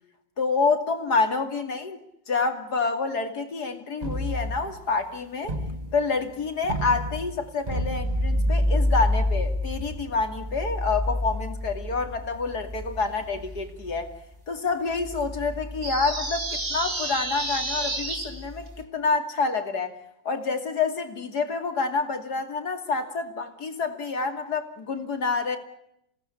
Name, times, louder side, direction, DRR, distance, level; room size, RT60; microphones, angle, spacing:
voice 1, 0.4-2.0 2.3-5.5 5.9-14.1 14.5-20.0 20.2-25.6, left 4 dB, 60° left, 6 dB, 3.1 m, -28 dB
sound 1, 4.0-4.9 5.4-6.1 6.6-14.2 14.9-18.8, left 1 dB, 25° right, 1.7 m, -29 dB
sound 2, 15.8-18.3, right 2 dB, 75° right, 4.9 m, -30 dB
28.0 x 18.0 x 8.5 m, 0.78 s
omnidirectional pair, 2.0 m